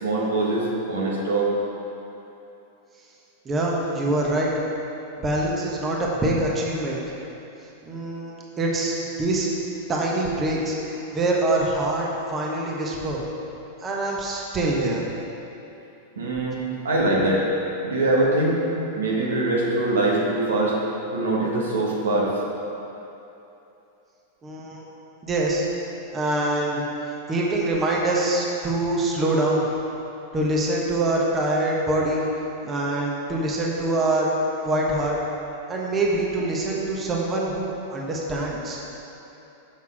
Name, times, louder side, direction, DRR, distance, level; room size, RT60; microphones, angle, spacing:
voice 1, 0.0-1.5 16.2-17.5 17.8-18.6 18.9-20.8 21.1-22.3, right 2 dB, 90° right, -3 dB, 1.3 m, -23 dB
voice 2, 3.4-4.5 5.2-7.0 7.8-9.5 9.9-13.2 13.8-15.1 24.4-24.8 25.2-25.7 26.1-29.7 30.3-32.2 32.6-34.3 34.6-35.2 35.7-38.8, right 2 dB, 25° right, -3 dB, 1.1 m, -24 dB
6.4 x 5.6 x 4.8 m, 2.9 s
hypercardioid pair, 110°, 0 cm